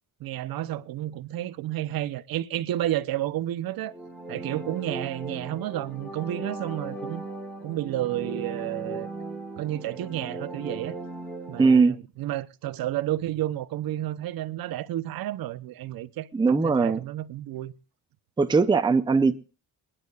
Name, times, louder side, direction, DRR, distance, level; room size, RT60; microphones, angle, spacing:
voice 1, 0.2-3.9 4.3-7.2 7.6-9.1 9.6-10.9 11.5-17.7, right 13 dB, 80° right, 0.8 m, -31 dB
sound 1, 3.8-11.7, right 2 dB, 5° left, 2.9 m, -38 dB
voice 2, 11.6-12.0 16.3-17.0 18.4-19.3, right 4 dB, 15° right, 0.6 m, -20 dB
28.0 x 10.0 x 2.4 m
cardioid pair, 145°, 35 cm